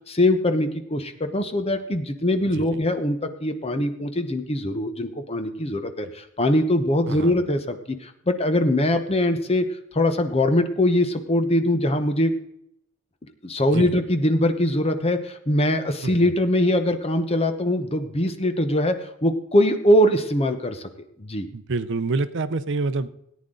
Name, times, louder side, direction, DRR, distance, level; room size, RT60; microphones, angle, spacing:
voice 1, 0.1-9.7 9.9-12.3 13.4-20.8 21.2-21.5, left 1 dB, 30° left, 8 dB, 0.9 m, -22 dB
voice 2, 21.5-23.1, right 3 dB, 55° right, 13 dB, 0.6 m, -26 dB
18.0 x 9.5 x 3.8 m, 0.78 s
head